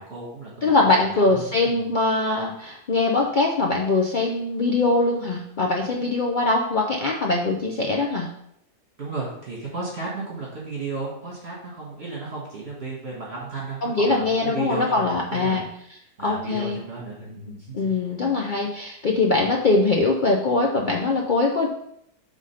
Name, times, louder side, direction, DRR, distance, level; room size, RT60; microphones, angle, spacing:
voice 1, 0.0-1.8 9.0-15.6 16.2-17.9 19.3-19.4, right 3 dB, 40° right, -5 dB, 1.6 m, -34 dB
voice 2, 0.6-8.3 13.8-15.7 16.2-16.8 17.7-21.7, left 3 dB, 85° left, -1 dB, 0.4 m, -22 dB
4.9 x 3.6 x 5.6 m, 0.74 s
omnidirectional pair, 1.7 m